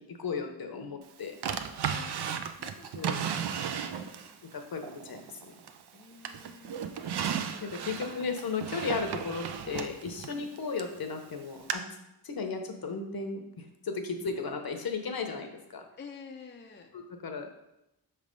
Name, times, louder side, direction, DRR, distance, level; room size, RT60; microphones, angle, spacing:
voice 1, 0.0-1.3 2.9-3.2 4.5-5.6 7.6-11.8 12.2-13.4 13.8-15.8 16.9-17.5, left 4 dB, 60° left, 5 dB, 0.8 m, -35 dB
Drawer open or close, 1.4-4.3 4.8-5.9 6.2-11.0 11.7-11.8, right 8 dB, 70° right, 0.5 m, -35 dB
voice 2, 1.8-4.4 5.9-8.3 10.3-10.6 16.0-16.9, left 5 dB, 25° left, 3 dB, 0.5 m, -50 dB
5.7 x 3.3 x 5.2 m, 0.89 s
wide cardioid pair, 120°, 41 cm